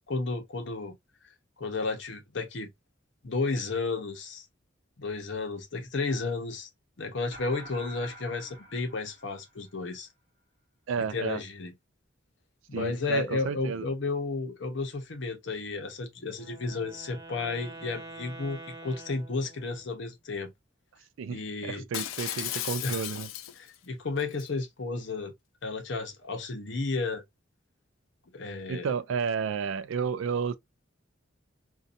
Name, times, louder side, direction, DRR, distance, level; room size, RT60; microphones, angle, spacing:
voice 1, 0.1-0.9 1.6-2.7 3.2-4.5 5.0-6.7 7.0-10.1 11.0-11.7 12.7-20.5 21.3-21.9 22.8-23.0 23.6-25.3 25.6-27.2 28.3-28.9, left 3 dB, 65° left, 0.7 m, -33 dB
sound 1, 7.3-9.9, equal, 50° right, 0.8 m, -48 dB
voice 2, 10.9-11.4 12.7-13.9 21.2-23.3 28.7-30.6, right 6 dB, 75° right, 0.3 m, -31 dB
Wind instrument woodwind instrument, 16.3-19.9, right 2 dB, 15° right, 0.4 m, -46 dB
Shatter, 21.9-23.7 24.2-24.5, left 11 dB, 85° left, 0.4 m, -35 dB
2.6 x 2.3 x 2.4 m
head